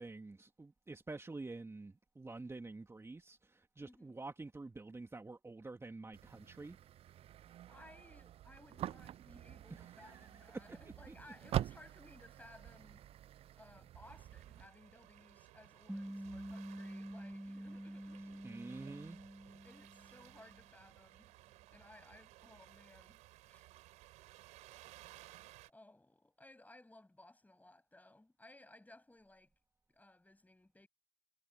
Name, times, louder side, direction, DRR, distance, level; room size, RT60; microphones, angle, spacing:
voice 1, 0.0-6.8 9.7-11.3 18.2-19.2, right 3 dB, 20° right, 2.6 m, -49 dB
voice 2, 3.8-4.2 7.7-13.0 13.6-18.4 18.7-18.9 19.6-21.3 21.7-23.2 23.5-23.6 24.4-24.7 25.1-25.3 25.7-29.5 29.9-30.9, left 2 dB, 15° left, 7.5 m, -60 dB
sound 1, 6.1-14.7, right 12 dB, 55° right, 0.4 m, -45 dB
sound 2, 14.0-25.7, right 18 dB, 75° right, 5.6 m, -59 dB
sound 3, 15.9-20.5, right 1 dB, 5° right, 2.8 m, -47 dB
hypercardioid pair, 50°, 12 cm